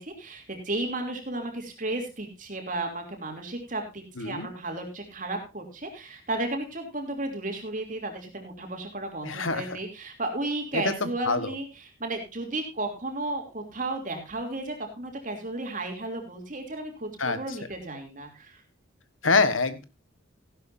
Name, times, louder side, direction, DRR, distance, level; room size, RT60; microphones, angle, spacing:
voice 1, 0.0-18.6, right 2 dB, 40° right, 3 dB, 3.0 m, -34 dB
voice 2, 4.2-4.5 9.2-9.6 10.7-11.0 11.3-11.5 17.2-17.4 19.2-19.8, left 3 dB, 90° left, 12 dB, 1.5 m, -25 dB
15.5 x 11.5 x 2.7 m, 0.27 s
head